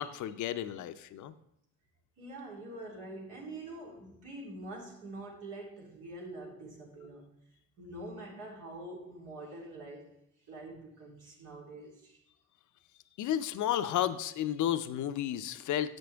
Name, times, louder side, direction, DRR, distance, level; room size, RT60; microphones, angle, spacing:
voice 1, 0.0-1.3 13.2-16.0, left 11 dB, 75° left, 0.6 m, -32 dB
voice 2, 2.2-7.2 7.8-10.2 10.5-12.2, right 2 dB, 85° right, 3.3 m, -45 dB
10.5 x 7.7 x 3.4 m
cardioid pair, 90°, 30 cm